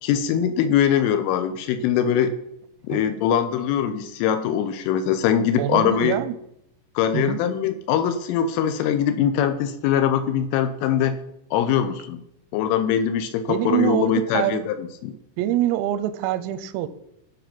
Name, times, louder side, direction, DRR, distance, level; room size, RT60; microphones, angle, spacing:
voice 1, 0.0-2.3 2.9-6.2 7.0-11.2 11.5-12.2 12.5-15.1, left 9 dB, 80° left, 10 dB, 3.2 m, -22 dB
voice 2, 5.6-6.4 7.1-7.4 13.5-14.7 15.4-16.9, right 12 dB, 90° right, 13 dB, 3.4 m, -24 dB
14.5 x 5.4 x 5.9 m, 0.80 s
omnidirectional pair, 6.0 m